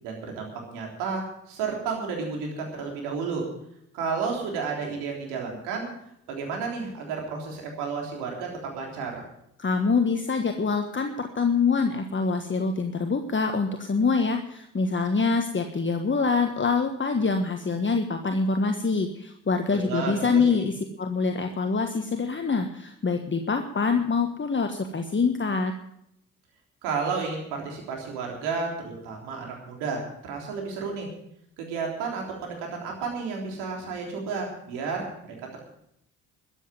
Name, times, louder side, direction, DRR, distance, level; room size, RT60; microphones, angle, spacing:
voice 1, 0.0-3.4 3.9-5.9 6.3-8.5 8.7-9.2 19.7-20.6 26.8-31.1 31.6-35.0, right 5 dB, 80° right, 0 dB, 3.6 m, -32 dB
voice 2, 9.6-20.7 21.0-25.7, left 4 dB, 30° left, 5 dB, 1.4 m, -25 dB
13.5 x 8.3 x 8.9 m, 0.75 s
hypercardioid pair, 40°, 40 cm